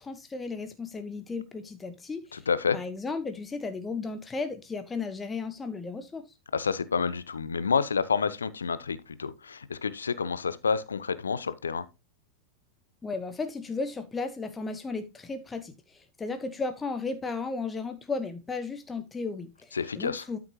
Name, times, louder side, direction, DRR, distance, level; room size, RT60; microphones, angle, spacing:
voice 1, 0.0-2.4 2.7-6.3 13.0-20.4, left 4 dB, 15° left, 0.9 m, -35 dB
voice 2, 2.3-2.8 6.5-11.9 19.7-20.2, left 5 dB, 75° left, 0.7 m, -29 dB
12.5 x 6.1 x 3.0 m
figure-of-eight pair, 90°, 0 cm